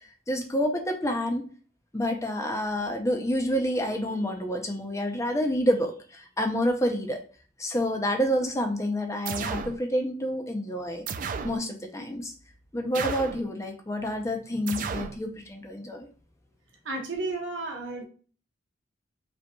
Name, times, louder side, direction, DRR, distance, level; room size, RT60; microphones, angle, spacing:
voice 1, 0.3-1.4 1.9-7.2 7.6-11.0 11.4-12.3 12.7-16.1, equal, 15° left, 4 dB, 0.6 m, -28 dB
sound 1, 9.3-9.8 11.1-11.6 12.9-13.5 14.7-15.2, right 6 dB, 45° right, 0.3 m, -33 dB
voice 2, 16.8-18.0, right 2 dB, 80° right, 1 dB, 1.2 m, -32 dB
4.9 x 3.0 x 2.3 m, 0.39 s
head